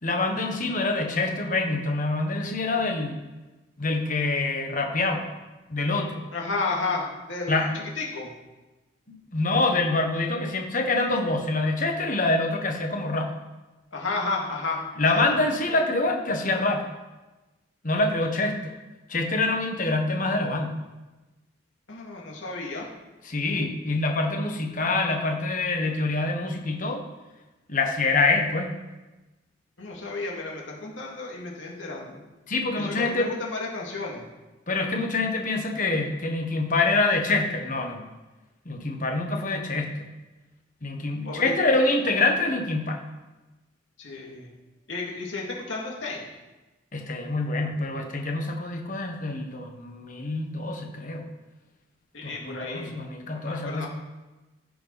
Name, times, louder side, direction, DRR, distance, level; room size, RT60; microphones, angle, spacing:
voice 1, 0.0-3.3 3.8-5.3 5.7-6.2 7.5-7.8 9.1-13.3 15.0-16.9 17.8-18.8 19.1-20.7 23.2-27.0 27.7-28.7 32.5-33.3 34.7-38.0 38.6-40.1 40.8-43.0 46.9-51.3 52.2-53.9, left 2 dB, 45° left, 3 dB, 1.4 m, -26 dB
voice 2, 6.3-7.7 8.0-8.3 13.9-14.8 15.1-15.2 21.9-22.9 29.8-32.2 32.7-34.3 41.2-41.5 44.0-44.5 44.9-46.3 52.1-53.0 53.3-53.9, left 3 dB, 80° left, -2 dB, 2.6 m, -32 dB
16.0 x 6.7 x 4.2 m, 1.1 s
head